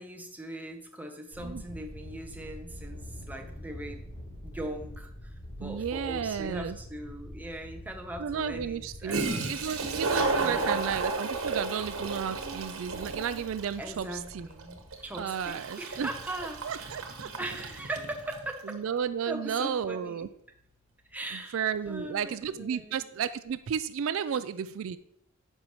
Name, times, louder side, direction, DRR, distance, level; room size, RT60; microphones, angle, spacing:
voice 1, 0.0-4.0 4.4-5.3 5.6-9.4 10.4-10.8 13.8-16.9 17.4-18.8 19.3-20.2 21.1-21.6 21.9-23.0, right 1 dB, 10° right, 3 dB, 0.7 m, -40 dB
Thunder, 1.3-15.5, left 1 dB, 20° left, 3.2 m, -46 dB
voice 2, 5.6-6.8 8.2-14.5 15.2-16.1 16.6-17.3 18.6-20.3 21.3-25.0, right 7 dB, 70° right, 13 dB, 0.3 m, -33 dB
Toilet flush, 7.1-7.2 8.8-8.9 9.1-18.5, right 3 dB, 85° right, 1.1 m, -33 dB
9.6 x 5.5 x 3.0 m, 0.72 s
head